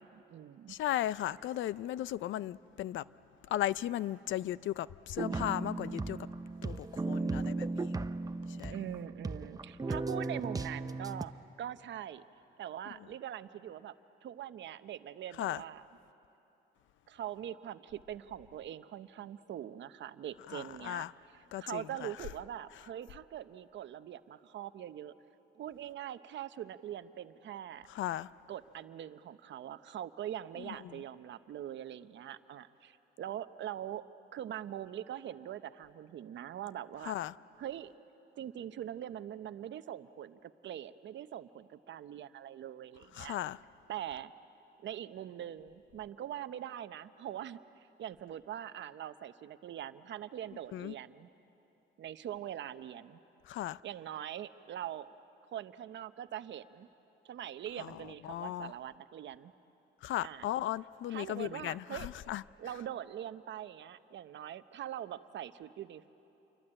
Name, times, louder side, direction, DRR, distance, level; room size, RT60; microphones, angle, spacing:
voice 1, 0.0-0.8 8.7-11.3 11.6-12.2 12.6-13.9 14.2-15.8 17.1-21.0 21.3-25.1 25.5-27.9 28.5-34.0 34.3-37.1 37.6-37.9 38.4-43.4 43.9-44.3 44.8-51.3 52.0-53.2 53.8-55.1 55.4-56.9 57.2-59.5 60.2-60.5 61.1-62.1 62.6-66.1, right 11 dB, 65° right, 0.9 m, -43 dB
voice 2, 0.7-3.0 3.5-6.2 6.6-8.0 8.6-8.7 15.4-15.6 20.5-21.1 21.5-22.1 27.9-28.3 30.7-30.8 37.0-37.3 43.2-43.6 50.7-50.9 53.5-53.8 57.8-57.9 58.2-58.7 60.0-62.4, left 13 dB, 75° left, 0.5 m, -36 dB
sound 1, 5.2-11.2, right 3 dB, 20° right, 0.7 m, -36 dB
28.0 x 23.5 x 8.9 m
cardioid pair, 90°, 20 cm